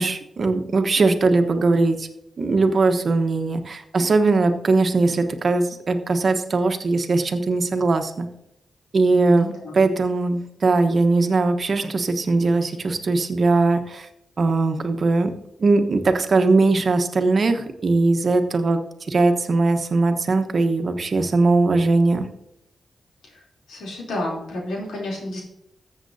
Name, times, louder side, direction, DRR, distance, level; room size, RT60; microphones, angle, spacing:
voice 1, 0.0-2.1 2.4-8.3 8.9-14.1 14.4-15.3 15.6-18.8 19.1-22.3, right 3 dB, 60° right, 7 dB, 1.1 m, -20 dB
voice 2, 9.1-9.8 23.3-23.4 23.7-25.4, left 1 dB, 90° left, -3 dB, 3.3 m, -30 dB
14.0 x 7.5 x 2.8 m, 0.81 s
cardioid pair, 50°, 0 cm